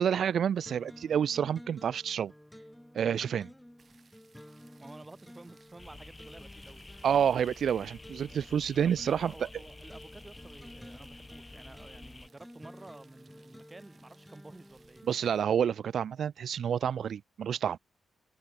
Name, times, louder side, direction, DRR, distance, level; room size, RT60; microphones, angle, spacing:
voice 1, 0.0-2.3 2.9-3.4 7.0-9.3 15.1-17.8, right 8 dB, 70° right, 0.3 m, -28 dB
sound 1, 0.7-15.4, equal, 5° left, 1.3 m, -53 dB
sound 2, 3.8-15.4, right 5 dB, 45° right, 4.2 m, -65 dB
voice 2, 4.8-6.8 8.8-15.1, right 2 dB, 20° right, 3.9 m, -51 dB
sound 3, 5.8-12.3, left 2 dB, 25° left, 2.3 m, -50 dB
cardioid pair, 90°, 0 cm